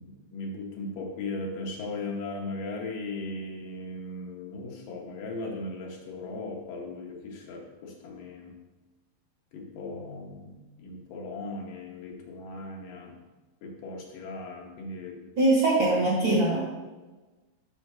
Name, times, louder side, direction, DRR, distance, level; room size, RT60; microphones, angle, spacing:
voice 1, 0.0-8.5 9.5-13.2 13.6-15.3, left 2 dB, 70° left, 0 dB, 2.5 m, -38 dB
voice 2, 15.4-16.6, right 2 dB, 50° right, -4 dB, 1.6 m, -22 dB
6.5 x 5.7 x 6.2 m, 1.2 s
omnidirectional pair, 4.4 m